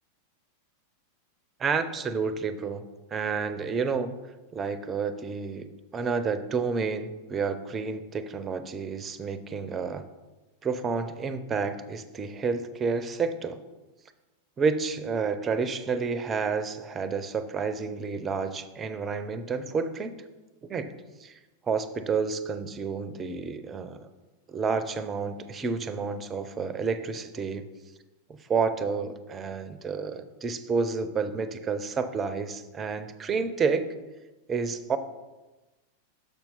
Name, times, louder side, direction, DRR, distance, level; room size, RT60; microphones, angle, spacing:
voice 1, 1.6-2.8 3.1-4.2 4.5-10.0 10.6-13.6 14.6-20.2 20.7-20.9 21.2-21.4 21.6-24.1 24.5-27.7 28.5-33.8 34.5-35.0, right 5 dB, 20° right, 12 dB, 0.5 m, -30 dB
7.0 x 5.8 x 3.9 m, 1.1 s
figure-of-eight pair, 90°, 0 cm